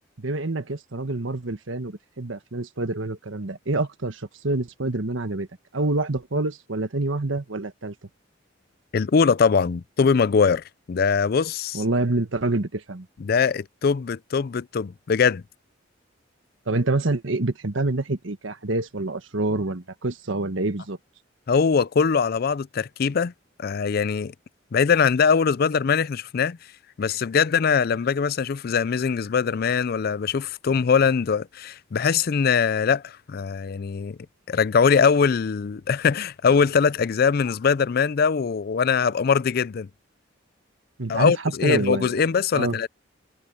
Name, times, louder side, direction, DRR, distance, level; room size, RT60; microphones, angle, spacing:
voice 1, 0.2-5.5 5.7-7.9 11.7-13.1 16.7-21.0 41.0-41.4 41.6-42.1 42.5-42.8, right 2 dB, 80° right, 1.4 m, -27 dB
voice 2, 8.9-11.8 13.2-15.4 21.5-23.3 23.6-24.3 24.7-26.6 27.0-34.2 34.5-39.9 41.1-42.9, left 6 dB, 50° left, 0.4 m, -22 dB
head